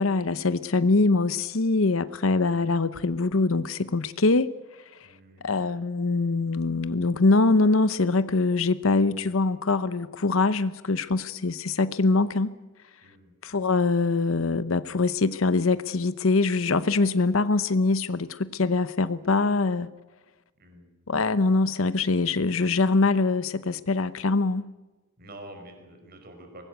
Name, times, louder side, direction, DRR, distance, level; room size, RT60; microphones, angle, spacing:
voice 1, 0.0-4.5 5.4-12.5 13.4-19.9 21.1-24.7, left 3 dB, 80° left, 14 dB, 0.8 m, -23 dB
voice 2, 5.0-5.5 13.0-13.3 20.6-20.9 25.2-26.6, right 1 dB, 50° right, 5 dB, 5.3 m, -47 dB
23.5 x 20.0 x 8.1 m, 1.2 s
head